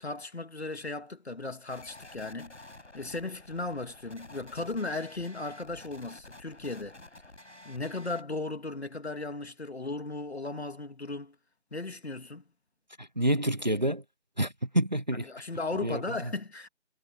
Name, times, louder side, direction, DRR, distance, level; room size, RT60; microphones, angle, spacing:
voice 1, 0.0-2.7 2.9-7.0 7.6-11.3 11.7-12.4 15.1-16.7, left 3 dB, 65° left, 3.0 m, -36 dB
sound 1, 1.7-8.2, left 2 dB, 80° left, 7.1 m, -51 dB
voice 2, 13.0-14.0 14.4-15.3 15.8-16.0, right 1 dB, 40° right, 0.7 m, -28 dB
figure-of-eight pair, 180°, 35 cm